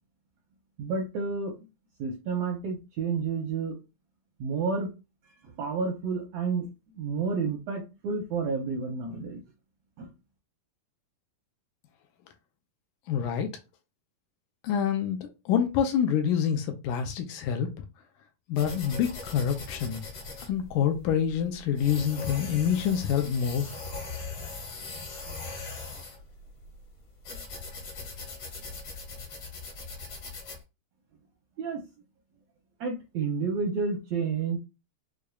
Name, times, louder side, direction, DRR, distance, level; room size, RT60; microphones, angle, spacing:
voice 1, 0.8-1.5 2.0-3.8 4.4-4.9 5.6-6.7 6.9-9.4 10.0-10.1 31.6-31.8 32.8-34.6, right 5 dB, 80° right, 1.5 m, -30 dB
voice 2, 13.1-13.5 14.6-17.9 18.5-20.0 20.5-23.7, left 8 dB, 80° left, 2.0 m, -27 dB
sound 1, 18.6-30.6, left 3 dB, 55° left, 1.8 m, -40 dB
6.3 x 2.2 x 2.3 m
omnidirectional pair, 3.8 m